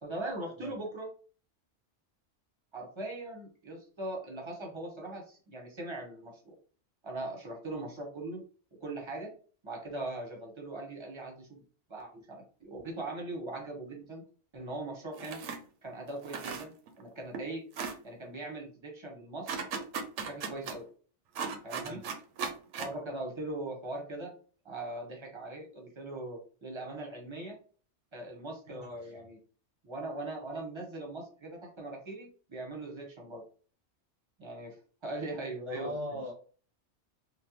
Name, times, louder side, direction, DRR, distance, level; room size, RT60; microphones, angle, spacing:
voice 1, 0.0-1.1 2.7-6.5 7.0-8.4 8.8-9.3 9.6-11.6 11.9-14.2 14.5-15.4 15.8-17.6 18.0-19.5 20.2-20.8 21.6-22.0 22.8-24.3 24.6-27.6 28.1-29.4 29.8-33.4 34.4-34.8 35.0-35.9, right 2 dB, 25° right, 1 dB, 0.8 m, -40 dB
sound 1, 15.2-15.6 16.1-17.0 17.3-17.4 17.7-18.0 19.5-20.7 21.3-22.9, right 5 dB, 85° right, 0.9 m, -36 dB
voice 2, 28.7-29.2 35.7-36.3, equal, 50° right, 0 dB, 0.4 m, -40 dB
3.5 x 2.1 x 2.9 m, 0.41 s
omnidirectional pair, 1.2 m